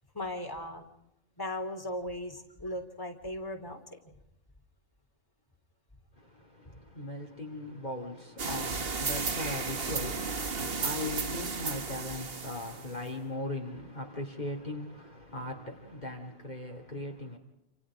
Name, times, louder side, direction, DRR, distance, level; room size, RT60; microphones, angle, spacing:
voice 1, 0.1-0.9 1.4-4.1, left 1 dB, 15° left, 3 dB, 3.6 m, -37 dB
voice 2, 6.9-17.4, left 1 dB, 35° left, 1 dB, 2.9 m, -39 dB
sound 1, 8.4-13.1, right 4 dB, 50° right, 1.8 m, -34 dB
29.0 x 28.5 x 5.0 m, 0.87 s
omnidirectional pair, 1.2 m